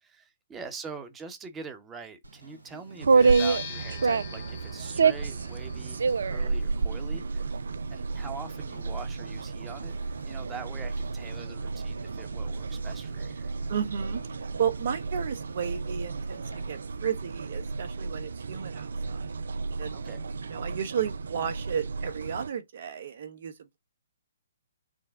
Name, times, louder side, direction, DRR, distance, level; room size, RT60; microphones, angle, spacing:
voice 1, 0.0-7.5 7.9-10.0 10.2-13.5 19.9-20.3, right 5 dB, 15° right, 0.9 m, -43 dB
Conversation, 2.2-17.1, right 2 dB, 85° right, 1.3 m, -50 dB
sound 1, 3.0-22.5, right 4 dB, 70° right, 0.3 m, -30 dB
sound 2, 3.2-10.9, left 8 dB, 45° left, 0.9 m, -46 dB
voice 2, 13.7-14.2 14.6-16.4 16.7-19.2 19.8-20.0 20.4-23.8, right 8 dB, 55° right, 0.9 m, -33 dB
6.3 x 2.1 x 3.5 m
figure-of-eight pair, 130°, 0 cm